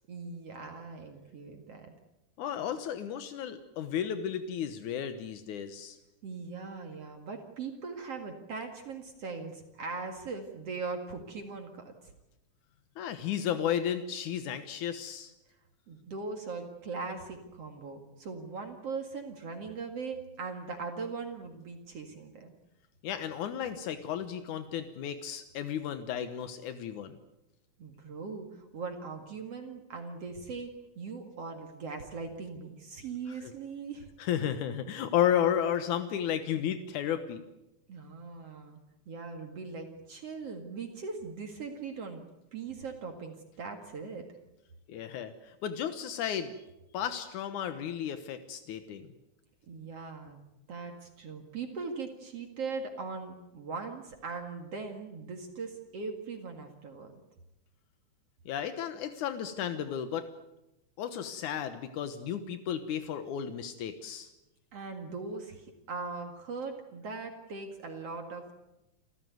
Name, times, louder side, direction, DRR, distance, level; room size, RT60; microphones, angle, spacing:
voice 1, 0.1-1.9 6.2-11.9 15.9-22.5 27.8-30.7 31.0-34.1 37.9-38.8 39.1-42.2 42.5-44.3 49.7-50.4 50.7-57.2 64.7-68.5, right 4 dB, 55° right, 4 dB, 2.9 m, -40 dB
voice 2, 2.4-6.0 13.0-15.3 23.0-27.2 33.4-33.5 34.2-37.4 44.9-46.5 46.9-49.1 58.5-60.3 61.0-64.3, left 9 dB, 85° left, 9 dB, 2.6 m, -33 dB
29.0 x 14.5 x 9.4 m, 0.95 s
omnidirectional pair, 3.4 m